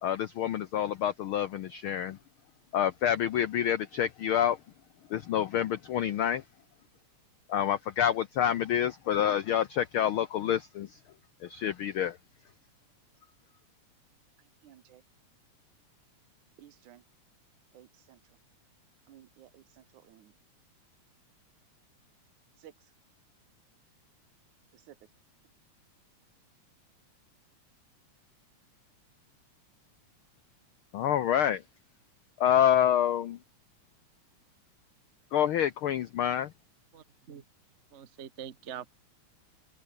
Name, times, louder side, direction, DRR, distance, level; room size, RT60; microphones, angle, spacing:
voice 1, 0.0-2.2 2.7-4.6 5.1-6.4 7.5-11.0 11.4-12.2 30.9-31.6 32.4-33.4 35.3-36.5, left 10 dB, 85° left, 1.1 m, -27 dB
voice 2, 14.4-15.0 16.6-17.0 17.7-18.2 19.1-20.3 22.6-22.7 24.7-25.0, right 12 dB, 80° right, 2.7 m, -55 dB
voice 3, 36.9-37.4 37.9-38.9, right 9 dB, 60° right, 0.7 m, -44 dB
open air
omnidirectional pair, 3.5 m